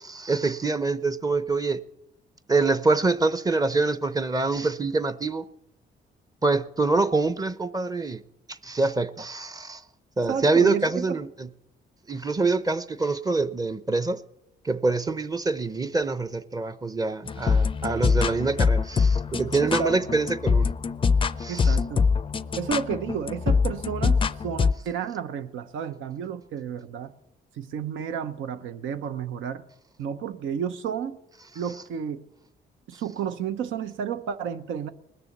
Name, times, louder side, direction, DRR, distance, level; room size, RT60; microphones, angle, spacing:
voice 1, 0.0-1.8 2.5-5.4 6.4-8.2 8.5-9.8 10.2-11.5 12.1-14.2 14.6-20.7 21.4-21.8, right 3 dB, 20° right, 0.7 m, -25 dB
voice 2, 10.3-11.2 19.6-20.1 21.5-22.1 22.6-27.1 27.6-29.6 30.0-31.2 31.5-32.3 32.9-34.9, right 7 dB, 80° right, 0.8 m, -31 dB
sound 1, 17.3-24.7, left 5 dB, 25° left, 0.4 m, -24 dB
20.0 x 6.9 x 7.2 m
cardioid pair, 90°, 20 cm